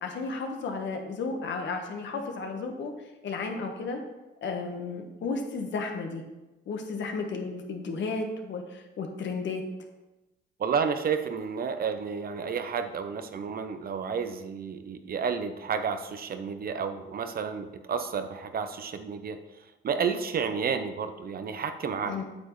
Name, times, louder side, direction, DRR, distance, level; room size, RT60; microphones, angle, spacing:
voice 1, 0.0-2.9 3.2-4.0 4.4-6.2 6.7-9.6 22.0-22.2, left 4 dB, 65° left, 3 dB, 1.3 m, -33 dB
voice 2, 10.6-19.4 19.8-22.1, right 6 dB, 50° right, 9 dB, 0.7 m, -31 dB
8.3 x 7.0 x 3.1 m, 1.0 s
cardioid pair, 90°, 20 cm